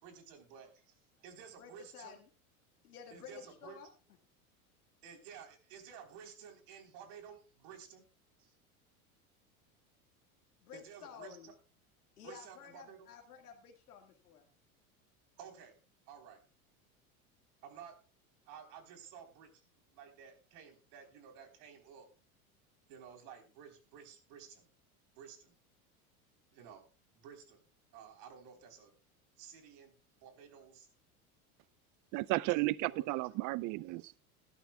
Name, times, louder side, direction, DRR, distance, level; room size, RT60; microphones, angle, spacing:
voice 1, 0.0-2.2 3.1-3.8 5.0-8.1 8.4-8.5 10.7-11.5 12.2-13.1 15.4-15.8 16.1-16.4 17.6-18.0 18.5-19.6 19.9-22.1 22.9-24.7 25.1-25.5 26.5-27.6 27.9-28.9 29.4-30.9 32.8-33.4, right 7 dB, 60° right, 3.8 m, -53 dB
voice 2, 1.6-2.3 2.8-3.9 10.6-11.5 12.2-14.5, left 7 dB, 85° left, 2.0 m, -52 dB
voice 3, 32.1-34.1, right 20 dB, 45° right, 0.6 m, -33 dB
19.0 x 11.5 x 2.3 m
hypercardioid pair, 85°, 44 cm